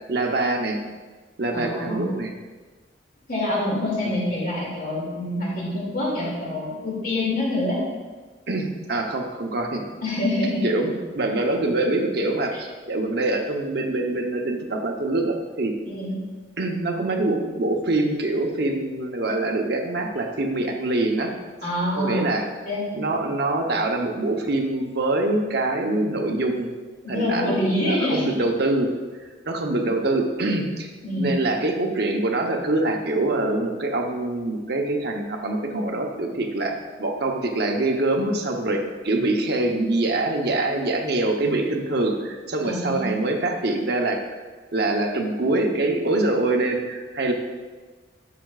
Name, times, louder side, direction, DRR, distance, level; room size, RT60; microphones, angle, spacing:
voice 1, 0.1-0.8 1.4-2.3 4.0-4.2 8.5-9.8 10.6-15.7 16.6-21.3 22.0-22.4 22.9-26.7 27.1-28.9 29.4-30.9 31.2-44.2 44.7-47.3, right 2 dB, 60° right, 2 dB, 0.9 m, -24 dB
voice 2, 1.5-2.1 3.3-7.8 10.0-10.6 15.8-16.1 21.6-22.2 22.6-22.9 27.0-28.2 31.0-31.3 42.6-43.1, left 1 dB, 50° left, -5 dB, 2.4 m, -26 dB
11.0 x 6.4 x 2.4 m, 1.4 s
head